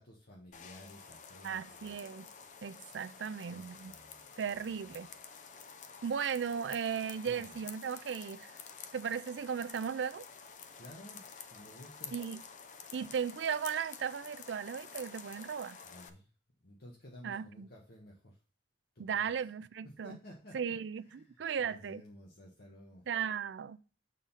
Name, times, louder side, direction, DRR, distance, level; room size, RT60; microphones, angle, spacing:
voice 1, 0.0-2.0 3.3-5.1 7.1-7.6 10.8-11.2 11.5-12.2 15.8-16.3 16.6-18.4 18.9-19.3 20.0-20.7 21.1-23.0, equal, 60° left, 1.3 m, -54 dB
sound 1, 0.5-16.1, left 6 dB, 45° left, 0.6 m, -50 dB
voice 2, 1.4-2.3 2.6-3.9 4.4-5.1 6.0-8.5 8.9-10.2 12.1-12.4 12.9-15.8 17.2-17.7 19.0-20.2 20.5-21.0 21.4-22.0 23.1-23.8, right 7 dB, 80° right, 0.4 m, -36 dB
6.6 x 3.7 x 5.5 m
head